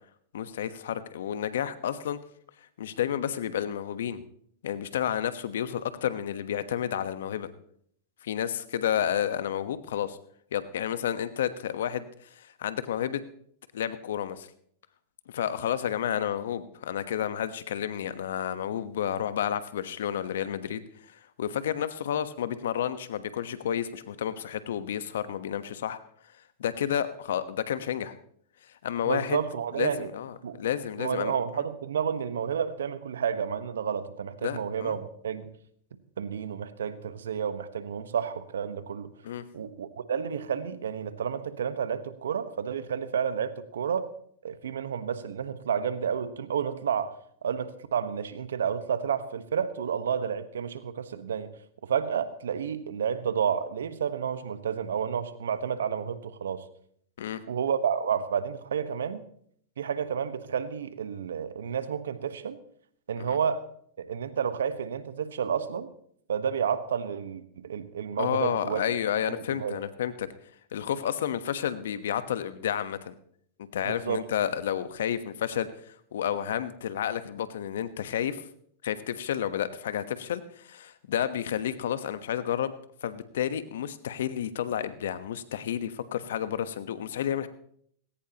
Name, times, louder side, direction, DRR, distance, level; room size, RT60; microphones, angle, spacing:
voice 1, 0.3-2.2 2.8-4.2 4.6-7.5 8.2-10.2 10.5-13.2 13.7-14.5 15.3-26.0 26.6-28.1 28.8-29.4 29.8-31.6 34.4-35.0 39.2-39.4 57.2-57.4 63.3-63.4 68.2-70.3 70.7-73.1 73.7-78.5 78.8-82.7 83.0-87.5, left 10 dB, 75° left, 12 dB, 1.2 m, -31 dB
voice 2, 29.0-30.1 30.4-30.6 31.0-35.5 36.2-39.1 39.5-44.1 44.4-47.1 47.4-51.5 51.8-56.6 57.5-59.2 59.8-62.6 63.1-63.6 64.0-65.9 66.3-69.0 69.3-69.7 73.8-74.2, right 7 dB, 80° right, 12 dB, 1.2 m, -30 dB
19.0 x 17.5 x 3.0 m, 0.66 s
hypercardioid pair, 105°, 0 cm